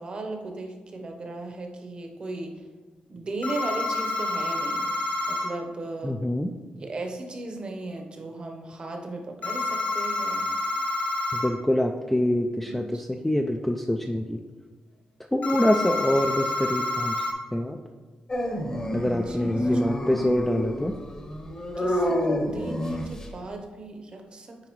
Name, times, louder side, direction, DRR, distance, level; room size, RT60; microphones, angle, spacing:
voice 1, 0.0-2.6 3.1-4.9 5.3-6.1 6.7-10.4 12.7-13.0 19.0-20.3 21.8-24.6, right 2 dB, 35° right, 3 dB, 0.9 m, -37 dB
sound 1, 3.4-5.5 9.4-11.5 15.4-17.3, left 2 dB, 75° left, 1.2 m, -28 dB
voice 2, 6.0-6.5 11.3-14.4 15.3-17.3 17.5-17.8 18.9-20.9, left 1 dB, 5° left, 3 dB, 0.3 m, -25 dB
Dog, 18.3-23.4, equal, 20° left, 0.8 m, -29 dB
8.9 x 4.8 x 3.0 m, 1.3 s
wide cardioid pair, 145°, 3 cm